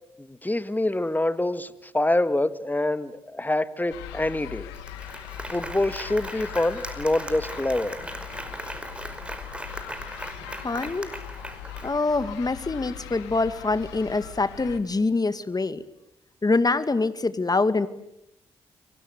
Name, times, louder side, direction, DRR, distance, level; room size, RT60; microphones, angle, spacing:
voice 1, 0.2-4.7 5.5-8.0, left 1 dB, 15° left, 1.9 m, -26 dB
sound 1, 3.9-14.8, left 10 dB, 85° left, 2.0 m, -40 dB
Applause, 4.4-4.5 4.7-12.3, right 1 dB, 10° right, 5.1 m, -38 dB
voice 2, 10.6-11.2 11.8-15.8 16.4-17.9, left 3 dB, 30° left, 2.2 m, -25 dB
30.0 x 24.0 x 8.2 m
hypercardioid pair, 40°, 13 cm